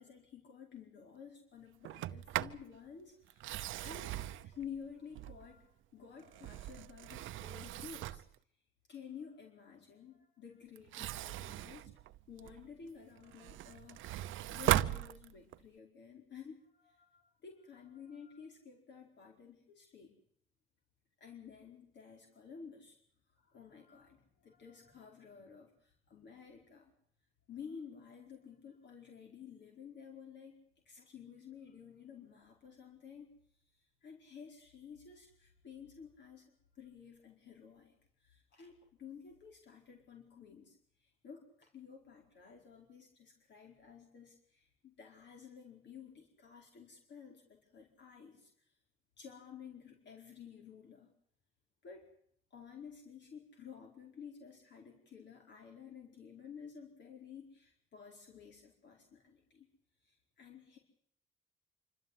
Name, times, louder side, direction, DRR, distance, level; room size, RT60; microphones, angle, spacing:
voice 1, 0.0-4.1 4.4-8.2 8.9-11.9 12.3-20.1 21.2-23.0 23.3-26.9 27.5-30.6 30.8-33.3 33.7-48.8 49.2-51.1 51.8-52.1 52.5-59.7 60.0-60.8, left 7 dB, 60° left, 2 dB, 4.6 m, -53 dB
Sliding door, 1.8-2.7 3.3-5.6 6.2-8.4 10.8-12.7 13.2-15.7, right 14 dB, 85° right, 0.8 m, -38 dB
26.5 x 13.5 x 9.4 m, 0.67 s
cardioid pair, 90°, 20 cm